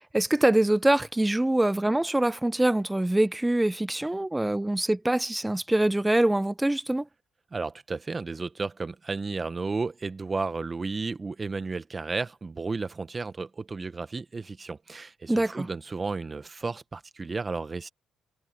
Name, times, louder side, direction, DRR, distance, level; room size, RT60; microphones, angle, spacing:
voice 1, 0.0-7.1 15.3-15.7, right 1 dB, 10° right, 1.0 m, -24 dB
voice 2, 7.5-17.9, right 4 dB, 30° right, 1.2 m, -33 dB
cardioid pair, 90°, 0 cm